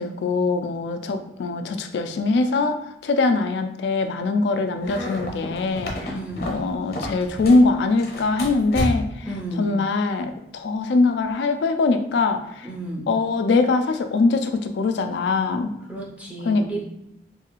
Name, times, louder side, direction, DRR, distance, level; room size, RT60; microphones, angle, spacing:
voice 1, 0.0-6.1 6.4-9.3 9.6-12.7 13.1-15.7 16.4-16.8, left 3 dB, 80° left, 7 dB, 0.3 m, -22 dB
sound 1, 4.8-7.7 8.0-9.3, left 1 dB, 55° left, 0.7 m, -31 dB
voice 2, 6.1-6.5 9.3-9.7 12.6-13.0 15.9-16.8, right 1 dB, 10° right, -4 dB, 0.4 m, -32 dB
2.6 x 2.3 x 2.9 m, 0.83 s
head